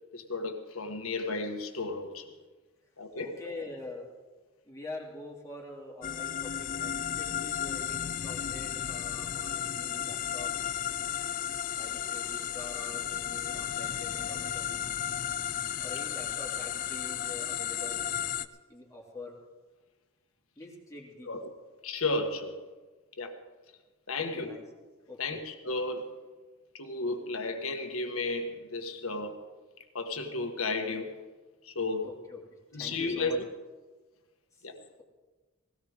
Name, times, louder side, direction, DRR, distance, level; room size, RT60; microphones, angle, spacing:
voice 1, 0.1-2.3 3.0-3.5 21.2-21.5 21.8-22.6 23.2-23.3 24.1-24.5 25.2-26.1 26.7-29.4 29.9-31.2 31.6-32.1 32.7-33.5 34.6-34.8, left 3 dB, 75° left, 5 dB, 1.7 m, -33 dB
voice 2, 3.0-4.1 4.6-10.5 11.7-14.8 15.1-15.2 15.8-18.0 18.4-19.4 20.6-21.3 24.2-24.6 25.1-25.4 32.0-32.4 32.7-33.4 34.6-35.0, left 2 dB, 15° left, -2 dB, 2.5 m, -45 dB
sound 1, 6.0-18.5, left 10 dB, 35° left, 0.4 m, -34 dB
18.5 x 17.0 x 3.7 m, 1.3 s
head